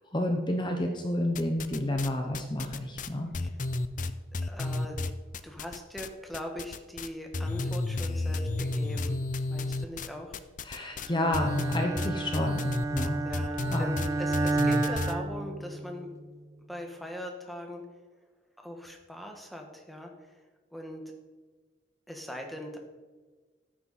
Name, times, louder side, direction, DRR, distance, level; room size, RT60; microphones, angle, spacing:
voice 1, 0.1-3.3 10.6-13.2 13.7-14.0, left 1 dB, 25° left, 3 dB, 1.0 m, -30 dB
sound 1, 1.4-2.1 2.3-6.1 6.3-7.1 7.3-15.1, left 2 dB, 40° left, 0.5 m, -32 dB
voice 2, 4.5-5.0 5.4-9.2 9.5-10.4 10.7-10.9 13.2-16.1 16.7-17.8 18.6-20.4 20.7-21.0 22.1-22.8, equal, ahead, 2 dB, 1.5 m, -40 dB
Bowed string instrument, 11.1-16.1, right 2 dB, 15° right, 0.5 m, -31 dB
13.5 x 9.2 x 4.2 m, 1.4 s
head